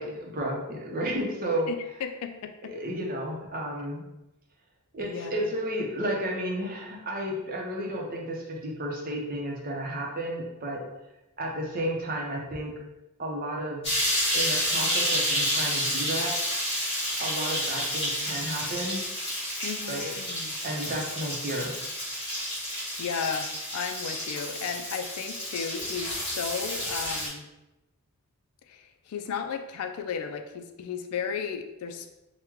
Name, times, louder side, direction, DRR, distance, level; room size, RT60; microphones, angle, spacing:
voice 1, 0.0-1.7 2.6-4.0 4.9-10.8 11.4-12.7 13.2-13.9 14.3-16.4 17.2-19.0 19.9-20.1 20.6-21.7, right 1 dB, 40° right, -1 dB, 0.6 m, -32 dB
voice 2, 1.7-2.7 5.0-5.5 19.6-20.6 23.0-27.5 28.7-32.1, left 6 dB, 75° left, 7 dB, 0.3 m, -34 dB
sound 1, 13.8-27.3, equal, 25° left, 1.3 m, -30 dB
3.6 x 2.2 x 3.0 m, 0.95 s
head